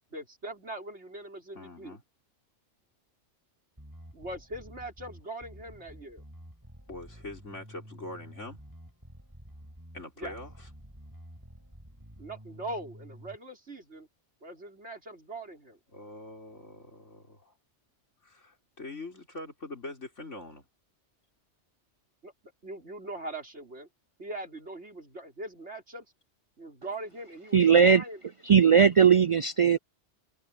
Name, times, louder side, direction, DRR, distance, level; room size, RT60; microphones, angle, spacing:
voice 1, 0.1-2.0 4.1-6.2 10.2-10.3 12.2-14.1 14.4-15.8 22.2-22.3 22.6-23.9 24.2-26.1 26.6-28.2 28.5-28.6, right 2 dB, 65° right, 5.1 m, -41 dB
voice 2, 1.6-2.0 6.9-8.6 9.9-10.7 15.9-17.5 18.2-20.7, left 2 dB, 85° left, 5.1 m, -43 dB
Bass guitar, 3.8-13.4, equal, 15° right, 7.1 m, -50 dB
voice 3, 27.5-28.0 28.4-29.8, right 7 dB, 50° right, 0.3 m, -19 dB
omnidirectional pair, 1.2 m